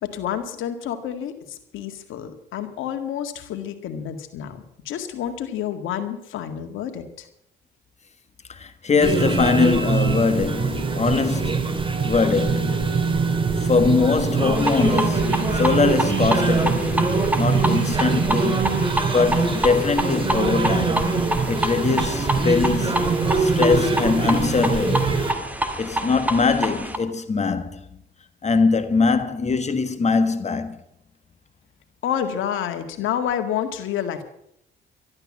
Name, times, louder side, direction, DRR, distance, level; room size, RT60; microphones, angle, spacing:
voice 1, 0.0-7.3 32.0-34.2, left 9 dB, 85° left, 2.0 m, -29 dB
voice 2, 8.5-12.9 13.6-21.1 21.5-23.1 23.4-25.5 25.8-27.8 28.4-30.8, left 4 dB, 35° left, 1.5 m, -22 dB
sound 1, 9.0-25.3, right 4 dB, 25° right, 2.4 m, -23 dB
sound 2, 14.5-27.0, right 1 dB, 10° right, 2.0 m, -28 dB
12.5 x 12.0 x 7.4 m
cardioid pair, 90°, 20 cm